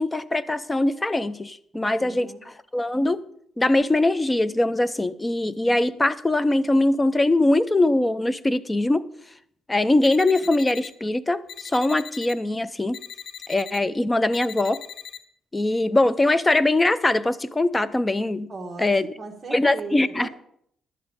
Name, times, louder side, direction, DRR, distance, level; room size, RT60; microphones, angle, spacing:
voice 1, 0.0-3.2 3.6-9.0 9.7-13.0 13.5-14.8 15.5-18.5 18.8-19.1 19.5-20.3, left 2 dB, 20° left, 0.6 m, -22 dB
voice 2, 1.7-2.5 18.5-20.3, right 3 dB, 25° right, 1.4 m, -37 dB
sound 1, 10.0-10.9 11.5-12.4 12.9-13.8 14.3-15.2, left 8 dB, 70° left, 0.9 m, -39 dB
11.5 x 8.1 x 5.1 m
cardioid pair, 90°, 0 cm